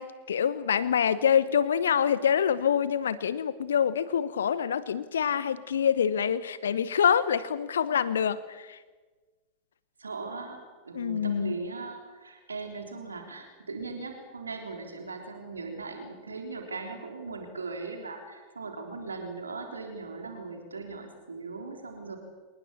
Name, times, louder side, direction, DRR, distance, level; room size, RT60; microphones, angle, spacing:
voice 1, 0.0-8.8 10.9-11.5, left 8 dB, 65° left, 17 dB, 0.9 m, -26 dB
voice 2, 10.0-22.2, right 3 dB, 75° right, 4 dB, 3.6 m, -39 dB
27.5 x 19.5 x 7.0 m, 1.3 s
figure-of-eight pair, 90°, 0 cm